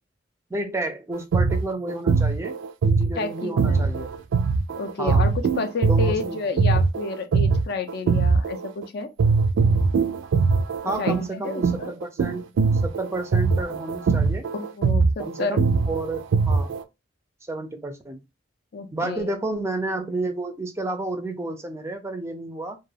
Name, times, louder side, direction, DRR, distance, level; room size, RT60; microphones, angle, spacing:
voice 1, 0.5-2.5 2.8-4.1 5.0-5.2 5.9-6.4 10.8-12.4 12.8-14.5 15.2-16.7 17.5-18.2 18.9-22.8, right 2 dB, 15° right, 0.4 m, -31 dB
sound 1, 1.1-8.8 9.2-16.8, right 4 dB, 85° right, 0.3 m, -21 dB
voice 2, 3.1-3.8 4.8-9.1 10.8-11.9 14.5-15.6 18.7-19.3, left 4 dB, 55° left, 0.4 m, -30 dB
2.2 x 2.2 x 3.2 m
head